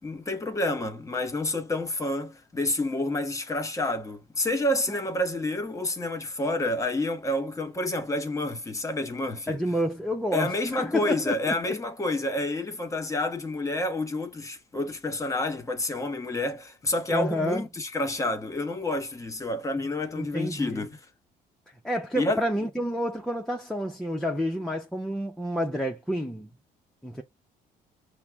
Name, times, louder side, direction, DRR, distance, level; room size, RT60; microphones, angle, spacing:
voice 1, 0.0-9.6 10.3-21.0 22.2-22.4, left 2 dB, 20° left, 1.0 m, -29 dB
voice 2, 9.5-11.5 17.1-17.6 20.2-20.8 21.8-26.5 27.0-27.2, equal, 5° left, 0.6 m, -29 dB
5.7 x 2.1 x 3.4 m
cardioid pair, 110°, 17 cm